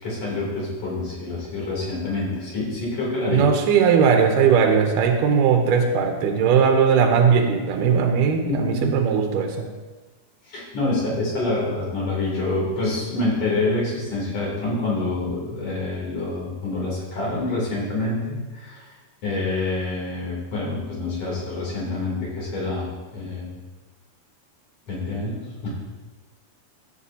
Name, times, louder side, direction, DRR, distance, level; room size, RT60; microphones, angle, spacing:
voice 1, 0.0-3.5 8.4-9.1 10.4-18.9 19.2-23.5 24.9-25.7, left 2 dB, 45° left, -5 dB, 3.8 m, -27 dB
voice 2, 3.3-9.7, right 6 dB, 85° right, 4 dB, 2.3 m, -19 dB
14.0 x 8.0 x 2.7 m, 1.3 s
omnidirectional pair, 3.6 m